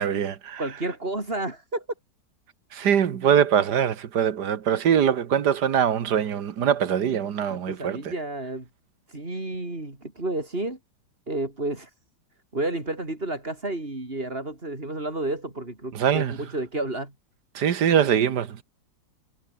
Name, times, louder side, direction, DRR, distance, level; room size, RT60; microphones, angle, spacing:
voice 1, 0.0-0.6 2.7-8.1 15.9-16.4 17.6-18.6, right 8 dB, 65° right, 1.8 m, -23 dB
voice 2, 0.6-1.8 7.5-8.7 9.1-10.8 11.3-11.9 12.5-17.1, right 2 dB, 30° right, 5.0 m, -31 dB
omnidirectional pair, 2.0 m